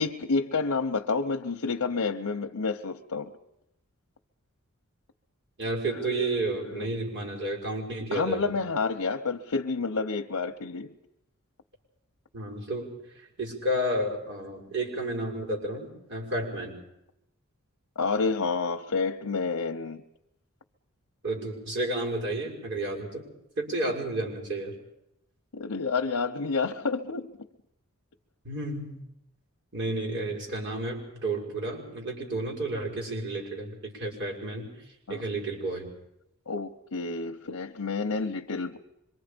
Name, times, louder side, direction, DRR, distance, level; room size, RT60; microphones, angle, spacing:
voice 1, 0.0-3.3 6.0-6.2 6.6-6.9 8.1-10.9 18.0-20.0 25.5-27.3 35.1-35.2 36.5-38.8, left 4 dB, 75° left, 0.8 m, -29 dB
voice 2, 5.6-8.5 12.3-16.8 21.2-23.3 23.6-24.7 28.4-29.0 29.7-34.8 35.1-35.9, right 1 dB, 55° right, 6.2 m, -31 dB
26.0 x 23.5 x 5.2 m
head